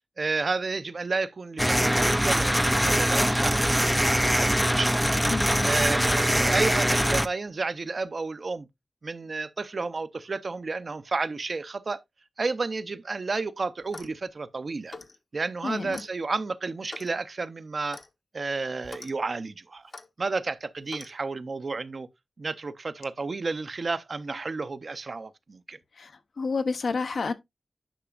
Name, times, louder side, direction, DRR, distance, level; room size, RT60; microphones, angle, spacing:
voice 1, 0.2-5.2 5.6-8.7 9.0-12.0 12.4-14.9 15.3-18.0 18.3-19.8 20.2-22.1 22.4-25.8, right 3 dB, 50° right, 0.6 m, -31 dB
sound 1, 1.6-7.3, equal, ahead, 0.3 m, -23 dB
voice 2, 5.3-5.7 15.6-16.0 26.0-27.3, left 4 dB, 80° left, 0.8 m, -30 dB
Clock, 13.8-14.2 14.9-15.2 15.9-16.1 16.9-17.1 17.9-18.1 18.8-19.1 19.9-20.1 20.9-21.1, left 3 dB, 40° left, 0.8 m, -44 dB
9.9 x 6.0 x 2.4 m
wide cardioid pair, 125°, 0 cm